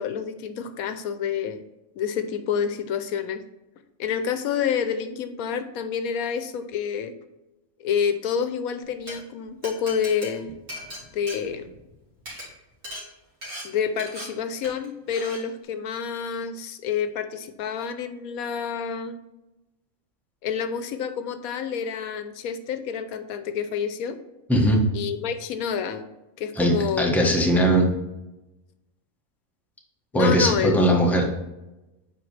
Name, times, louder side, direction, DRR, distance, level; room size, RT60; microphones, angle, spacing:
voice 1, 0.0-1.6 2.0-3.4 4.0-7.1 7.8-10.5 11.1-11.7 13.6-19.2 20.4-24.2 24.9-26.1 26.4-27.1 30.1-30.9, left 7 dB, 90° left, 9 dB, 1.1 m, -28 dB
Glass, 8.9-9.1 9.6-11.9 12.2-12.4 12.8-13.0 13.4-13.6 14.0-14.2 14.6-14.9 15.1-15.4, equal, 50° right, 2.7 m, -38 dB
voice 2, 24.5-24.8 26.6-27.9 30.1-31.3, equal, ahead, -1 dB, 1.0 m, -19 dB
7.8 x 4.8 x 3.3 m, 0.99 s
omnidirectional pair, 1.5 m